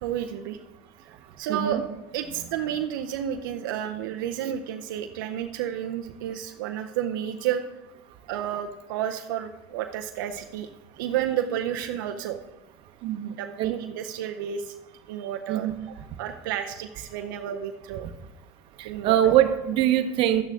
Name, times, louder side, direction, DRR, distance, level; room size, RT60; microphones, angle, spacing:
voice 1, 0.0-0.6 1.0-1.8 2.1-7.7 8.3-10.7 11.0-12.4 13.4-14.7 15.1-18.1 18.8-19.3, right 10 dB, 85° right, 5 dB, 0.6 m, -31 dB
voice 2, 1.5-1.8 13.0-13.7 15.5-15.8 18.8-20.4, right 11 dB, 55° right, 8 dB, 0.9 m, -23 dB
11.0 x 9.0 x 3.6 m, 1.0 s
supercardioid pair, 110°, 11 cm